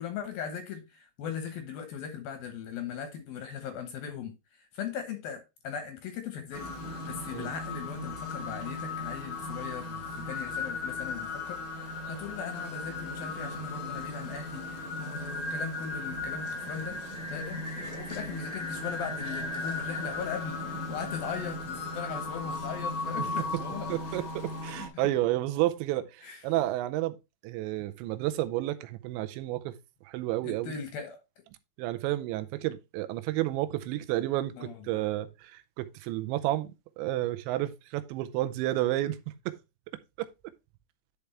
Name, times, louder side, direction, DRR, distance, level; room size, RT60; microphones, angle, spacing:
voice 1, 0.0-6.7 7.1-17.0 17.3-24.2 24.9-25.0 26.2-26.4 30.4-31.2 34.5-35.0, left 7 dB, 70° left, 2.5 m, -39 dB
sound 1, 6.5-24.9, left 2 dB, 35° left, 1.9 m, -36 dB
voice 2, 23.9-27.2 27.4-29.8 30.1-30.8 31.8-36.7 37.0-39.6, right 15 dB, 85° right, 2.9 m, -31 dB
11.0 x 4.8 x 3.2 m
omnidirectional pair, 5.2 m